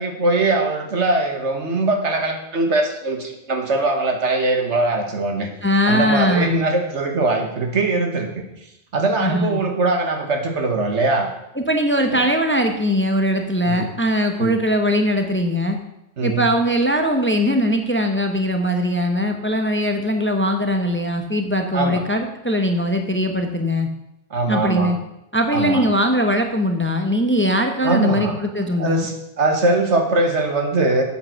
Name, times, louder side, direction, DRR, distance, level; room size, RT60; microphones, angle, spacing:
voice 1, 0.0-5.5 5.9-8.4 8.9-11.3 12.1-12.3 13.7-13.9 14.4-14.5 16.2-16.5 21.7-22.0 24.3-24.9 25.5-25.8 27.8-28.4 28.8-31.0, right 2 dB, 80° right, 4 dB, 1.8 m, -21 dB
voice 2, 5.6-6.6 9.2-9.6 11.6-15.8 16.2-23.9 24.5-25.0 25.3-29.1, equal, 10° left, 5 dB, 0.8 m, -20 dB
8.3 x 7.8 x 6.4 m, 0.85 s
omnidirectional pair, 1.2 m